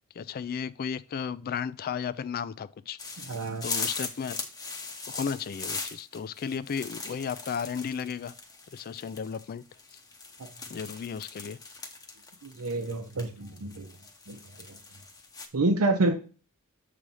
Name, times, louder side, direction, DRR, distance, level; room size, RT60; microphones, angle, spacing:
voice 1, 0.2-3.2 3.6-4.4 5.1-8.3 8.7-9.6 10.7-11.6, left 7 dB, 45° left, 0.3 m, -34 dB
sound 1, 3.0-15.5, left 4 dB, 15° left, 0.8 m, -40 dB
voice 2, 3.3-3.7 12.4-13.9 14.3-14.4 15.5-16.1, right 2 dB, 80° right, 0.8 m, -27 dB
7.3 x 3.3 x 5.4 m
head